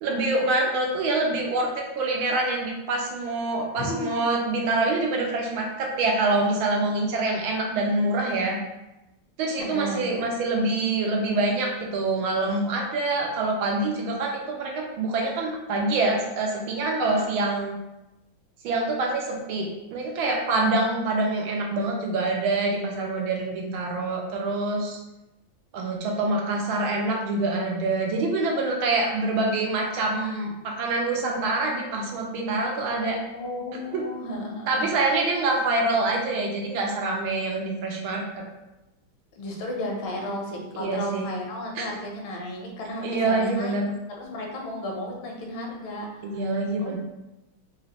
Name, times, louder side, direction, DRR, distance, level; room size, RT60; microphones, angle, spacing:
voice 1, 0.0-1.7 2.0-8.6 9.4-17.7 18.6-25.0 25.7-33.2 33.9-34.0 34.7-38.4 40.8-41.3 41.7-41.9 43.0-44.0 46.2-47.0, right 2 dB, 85° right, 0 dB, 1.5 m, -25 dB
voice 2, 3.8-4.2 9.6-10.0 17.1-17.3 32.7-34.8 39.4-43.8 44.2-46.2 46.8-47.0, left 1 dB, 75° left, 0 dB, 1.6 m, -33 dB
4.0 x 3.0 x 2.8 m, 0.96 s
omnidirectional pair, 2.2 m